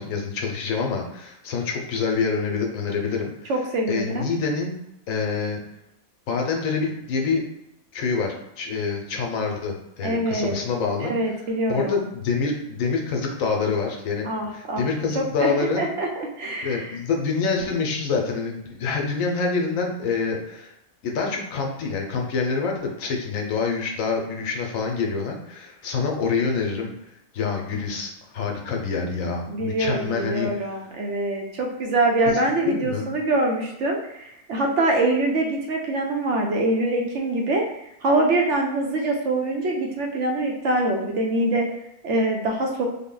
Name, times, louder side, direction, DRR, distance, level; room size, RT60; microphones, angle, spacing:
voice 1, 0.0-3.5 3.9-4.8 5.1-5.6 6.3-7.4 7.9-11.1 11.7-15.8 16.6-20.7 21.0-26.9 27.3-30.5 32.7-33.1, left 4 dB, 75° left, 1 dB, 1.1 m, -26 dB
voice 2, 3.5-4.3 10.0-10.6 11.0-12.0 14.2-14.8 15.1-15.5 15.8-17.0 29.5-37.6 38.0-41.7 42.0-42.9, right 2 dB, 65° right, 1 dB, 0.9 m, -24 dB
3.7 x 2.1 x 3.8 m, 0.83 s
omnidirectional pair, 1.4 m